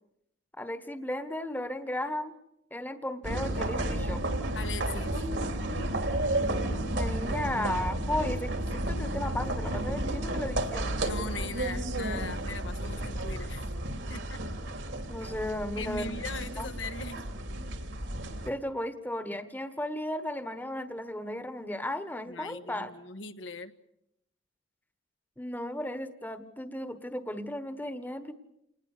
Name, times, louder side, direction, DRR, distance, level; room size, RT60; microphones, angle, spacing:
voice 1, 0.6-2.3 2.7-4.2 6.8-10.9 15.1-16.1 16.6-16.7 18.4-22.9 25.4-28.3, left 1 dB, 10° left, 10 dB, 1.3 m, -35 dB
sound 1, 3.2-18.5, right 1 dB, 70° right, 2.9 m, -32 dB
voice 2, 4.5-5.2 11.0-13.6 14.1-14.5 15.8-17.2 22.3-23.7, left 3 dB, 70° left, 8 dB, 1.5 m, -40 dB
28.5 x 20.0 x 6.7 m, 0.80 s
head